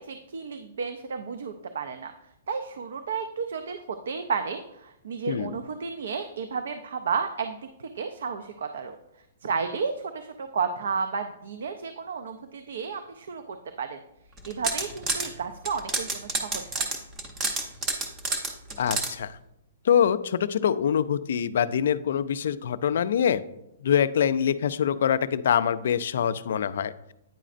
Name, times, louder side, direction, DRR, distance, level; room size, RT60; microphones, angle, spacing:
voice 1, 0.0-2.1 2.5-9.0 9.4-14.0 14.5-16.9, right 5 dB, 70° right, 7 dB, 0.4 m, -32 dB
voice 2, 5.3-5.6 18.8-19.3 19.8-23.4 23.8-26.9, left 8 dB, 55° left, 15 dB, 0.3 m, -24 dB
sound 1, 14.4-15.3 15.7-19.1, right 2 dB, 15° right, 0.6 m, -29 dB
9.0 x 5.1 x 2.5 m, 0.84 s
hypercardioid pair, 175°, 0 cm